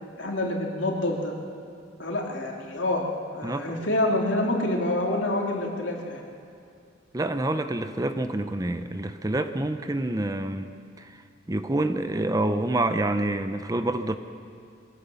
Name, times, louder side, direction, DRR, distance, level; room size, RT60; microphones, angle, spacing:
voice 1, 0.2-1.3 2.0-3.1 3.3-6.2, left 1 dB, 70° left, -1 dB, 3.0 m, -27 dB
voice 2, 3.4-3.8 7.1-11.1 11.5-14.2, right 2 dB, 20° right, 9 dB, 0.7 m, -27 dB
23.0 x 16.5 x 7.1 m, 2.3 s
head